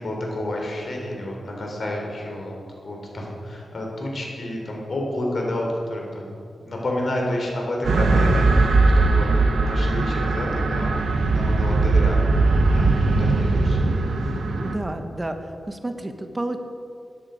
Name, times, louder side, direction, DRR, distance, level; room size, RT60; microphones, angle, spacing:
voice 1, 0.0-2.5 2.8-10.9 11.3-12.9 13.2-13.9, left 1 dB, 55° left, -1 dB, 3.6 m, -30 dB
sound 1, 7.8-14.8, right 3 dB, 80° right, 1.2 m, -19 dB
voice 2, 14.6-15.4 15.7-16.6, right 1 dB, 20° right, 7 dB, 1.1 m, -30 dB
14.0 x 10.0 x 5.1 m, 2.5 s
cardioid pair, 70°, 0 cm